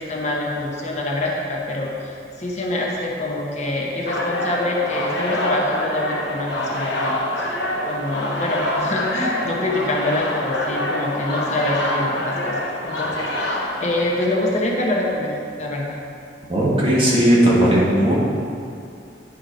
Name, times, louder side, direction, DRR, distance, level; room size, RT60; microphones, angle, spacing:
voice 1, 0.0-7.6 7.9-12.6 12.8-15.9, left 1 dB, 40° left, -2 dB, 0.9 m, -25 dB
sound 1, 4.1-14.5, left 1 dB, 85° left, 1.0 m, -26 dB
voice 2, 16.5-18.1, right 1 dB, 30° right, -6 dB, 1.6 m, -16 dB
9.1 x 4.4 x 5.1 m, 2.4 s
head